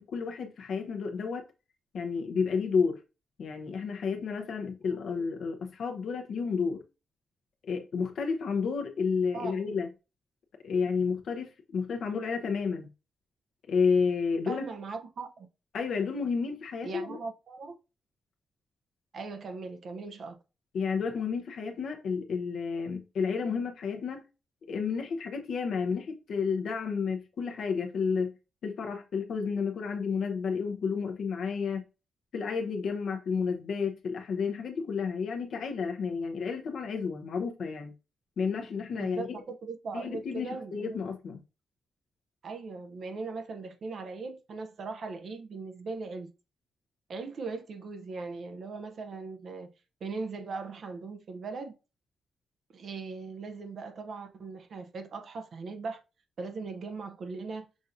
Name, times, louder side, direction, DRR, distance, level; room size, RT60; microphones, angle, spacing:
voice 1, 0.1-1.4 1.9-3.0 3.4-6.8 7.6-9.9 10.6-12.9 13.7-14.6 15.7-17.2 20.7-24.2 24.7-28.3 28.6-31.8 32.3-37.9 38.4-39.4 39.9-41.4, left 5 dB, 70° left, 0.7 m, -31 dB
voice 2, 9.3-9.8 14.5-15.5 16.8-17.8 19.1-20.4 39.0-41.0 42.4-46.3 47.1-49.7 50.0-51.7 52.7-56.0 56.4-57.7, right 4 dB, 60° right, 0.6 m, -39 dB
6.1 x 2.6 x 2.6 m
cardioid pair, 105°, 0 cm